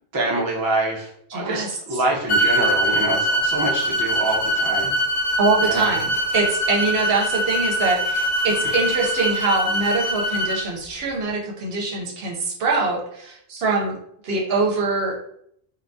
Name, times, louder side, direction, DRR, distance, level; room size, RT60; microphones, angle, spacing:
voice 1, 0.1-4.9 5.6-5.9, right 2 dB, 30° right, -3 dB, 0.4 m, -25 dB
voice 2, 1.3-2.0 5.4-14.0 14.2-15.2, right 3 dB, 70° right, -1 dB, 0.8 m, -23 dB
sound 1, 2.3-10.6, equal, 65° left, 0.9 m, -23 dB
3.3 x 2.2 x 2.5 m, 0.70 s
omnidirectional pair, 1.1 m